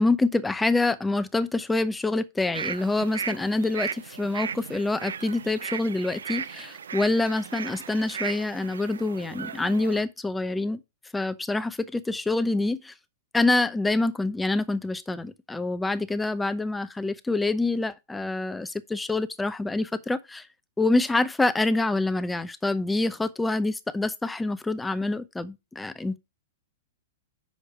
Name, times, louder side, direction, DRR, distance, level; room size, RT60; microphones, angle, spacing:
voice 1, 0.0-10.8 11.1-12.9 13.3-20.5 20.8-26.2, left 2 dB, 5° left, 0.7 m, -26 dB
sound 1, 2.5-10.0, right 7 dB, 85° right, 0.6 m, -36 dB
6.5 x 5.0 x 5.9 m
hypercardioid pair, 135°, 0 cm